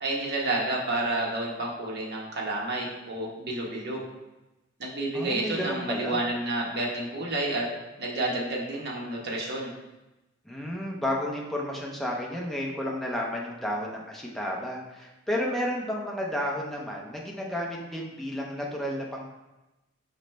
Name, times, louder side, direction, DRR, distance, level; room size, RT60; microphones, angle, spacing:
voice 1, 0.0-4.0 4.8-7.7 8.0-9.7, right 2 dB, 60° right, -2 dB, 1.0 m, -30 dB
voice 2, 5.1-6.2 10.5-19.2, equal, ahead, -2 dB, 0.5 m, -32 dB
5.0 x 3.1 x 3.2 m, 1.0 s
head